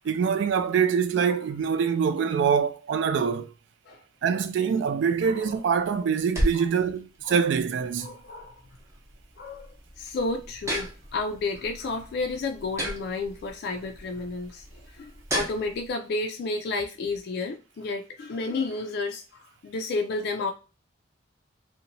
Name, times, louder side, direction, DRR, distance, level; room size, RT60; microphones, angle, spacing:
voice 1, 0.0-3.5 4.2-8.1, right 6 dB, 65° right, 0.3 m, -24 dB
voice 2, 5.2-5.6 6.5-6.7 7.2-7.4 8.0-8.6 9.4-14.6 14.9-20.5, left 3 dB, 55° left, 0.3 m, -31 dB
sound 1, 5.3-15.9, equal, 15° right, 0.6 m, -35 dB
2.8 x 2.1 x 2.6 m
head